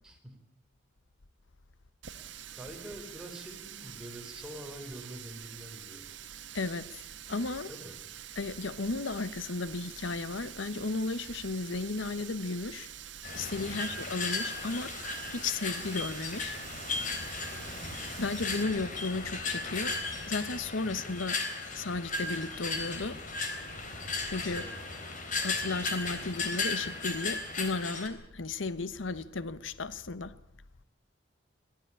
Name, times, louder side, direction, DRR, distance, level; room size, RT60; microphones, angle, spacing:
voice 1, 0.0-0.4 2.6-6.1 7.7-7.9 13.7-14.0 20.8-21.1 24.5-24.8, equal, 5° right, 4.6 m, -46 dB
Water tap faucet, 2.0-18.6, right 10 dB, 70° right, 1.5 m, -46 dB
voice 2, 6.5-7.7 8.4-12.9 13.3-14.9 15.3-16.6 18.2-20.0 20.3-21.4 21.7-23.2 24.2-24.6 25.4-30.4, left 3 dB, 90° left, 1.0 m, -34 dB
sound 1, 13.2-28.1, left 3 dB, 45° left, 3.5 m, -36 dB
23.0 x 15.0 x 9.9 m
head